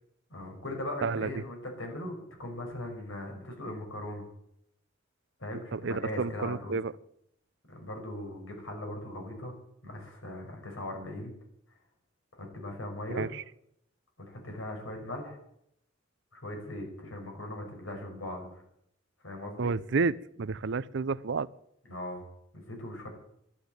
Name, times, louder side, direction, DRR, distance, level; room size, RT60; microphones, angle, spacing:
voice 1, 0.3-4.3 5.4-6.8 7.7-9.5 9.8-11.3 12.3-13.3 14.2-15.4 16.3-18.6 19.2-19.7 21.9-22.3 22.5-23.1, left 1 dB, 90° left, 3 dB, 5.5 m, -39 dB
voice 2, 1.0-1.4 5.7-6.9 13.2-13.4 19.6-21.5, right 4 dB, 65° right, 19 dB, 0.6 m, -30 dB
12.0 x 11.5 x 9.0 m, 0.75 s
head